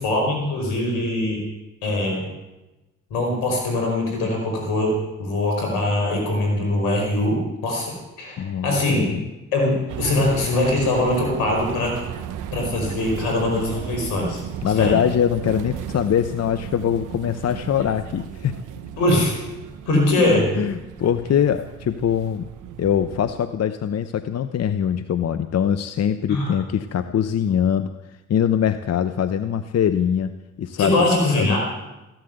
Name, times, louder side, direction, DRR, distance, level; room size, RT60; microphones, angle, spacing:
voice 1, 0.0-1.4 1.8-2.3 3.1-9.1 9.5-11.9 12.5-15.0 19.0-19.3 19.9-20.5 26.3-26.5 30.8-31.6, left 1 dB, 85° left, 1 dB, 5.3 m, -22 dB
voice 2, 8.4-9.2 14.6-18.6 20.2-22.4 22.8-27.9 28.3-31.0 31.3-31.6, left 9 dB, 55° left, 11 dB, 0.9 m, -23 dB
sound 1, 9.9-23.4, right 10 dB, 75° right, 1.3 m, -35 dB
15.0 x 12.0 x 8.0 m, 1.0 s
hypercardioid pair, 50°, 30 cm